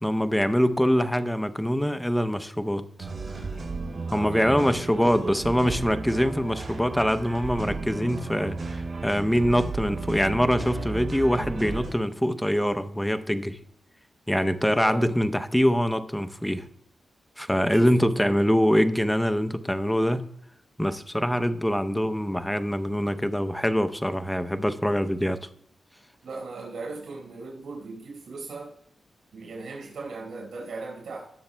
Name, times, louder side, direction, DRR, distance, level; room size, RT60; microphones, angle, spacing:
voice 1, 0.0-3.1 4.1-13.6 14.3-16.6 17.4-20.3 20.8-25.4, equal, 5° left, 0.6 m, -24 dB
sound 1, 3.0-11.9, right 3 dB, 50° right, 3.7 m, -34 dB
voice 2, 4.1-5.4 14.7-15.1 17.7-18.4 26.2-28.7 29.3-31.3, right 3 dB, 90° right, 4.5 m, -38 dB
19.0 x 7.0 x 2.2 m
wide cardioid pair, 110°, 0 cm